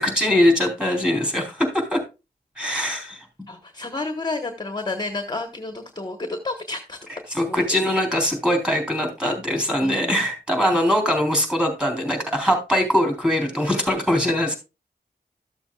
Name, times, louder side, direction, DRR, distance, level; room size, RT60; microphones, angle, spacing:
voice 1, 0.0-2.0 2.6-3.3 7.3-14.6, left 1 dB, 5° right, 4 dB, 3.5 m, -22 dB
voice 2, 3.5-7.0 7.3-7.6 9.8-10.2, left 3 dB, 25° left, 5 dB, 1.2 m, -31 dB
13.5 x 7.2 x 2.3 m, 0.27 s
wide cardioid pair, 100°, 17 cm